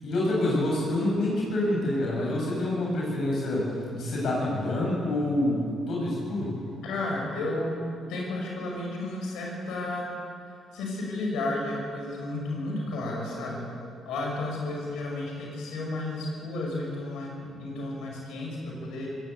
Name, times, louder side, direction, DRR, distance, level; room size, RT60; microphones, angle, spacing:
voice 1, 0.0-6.5, left 1 dB, 70° left, -4 dB, 7.6 m, -27 dB
voice 2, 6.7-7.8 8.1-10.1 10.7-13.6 14.1-19.1, left 2 dB, 90° left, -1 dB, 6.1 m, -32 dB
21.5 x 17.0 x 8.4 m, 2.3 s
cardioid pair, 90°, 0 cm